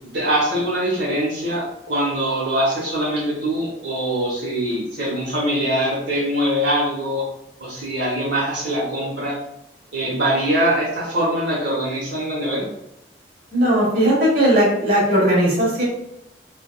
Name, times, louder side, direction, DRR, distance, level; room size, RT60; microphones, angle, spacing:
voice 1, 0.1-7.2 7.6-9.4 9.9-12.7, right 1 dB, 80° right, -7 dB, 0.9 m, -23 dB
voice 2, 13.5-15.8, equal, 55° right, -5 dB, 1.2 m, -17 dB
3.4 x 2.2 x 2.2 m, 0.80 s
head